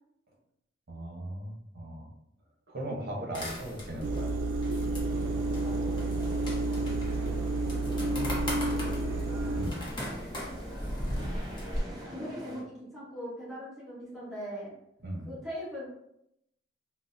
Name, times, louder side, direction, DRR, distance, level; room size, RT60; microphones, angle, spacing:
voice 1, 0.9-2.1 2.7-4.3 9.5-9.9 15.0-15.3, right 1 dB, 55° right, -1 dB, 0.8 m, -38 dB
sound 1, 3.3-11.8, equal, 25° left, 0.7 m, -38 dB
sound 2, 4.0-9.7, right 2 dB, 85° right, 0.3 m, -30 dB
sound 3, 5.0-12.6, equal, 20° right, 0.6 m, -43 dB
voice 2, 12.0-12.6 12.9-14.7 15.3-15.9, equal, ahead, -9 dB, 1.2 m, -39 dB
3.8 x 2.0 x 2.5 m, 0.79 s
head